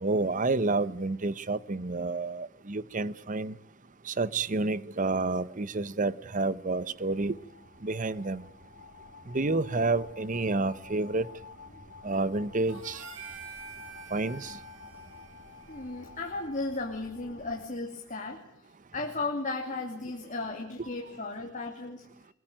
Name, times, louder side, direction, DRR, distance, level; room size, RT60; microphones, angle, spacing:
voice 1, 0.0-3.5 4.0-7.4 7.8-8.5 9.3-11.3 12.0-13.0 14.1-14.6, right 3 dB, 40° right, 0.9 m, -29 dB
sound 1, 6.6-17.7, left 4 dB, 70° left, 2.6 m, -50 dB
Harmonica, 12.7-17.2, right 6 dB, 65° right, 5.7 m, -48 dB
voice 2, 15.7-18.4 18.9-22.0, left 3 dB, 40° left, 2.8 m, -35 dB
22.5 x 22.5 x 9.1 m
head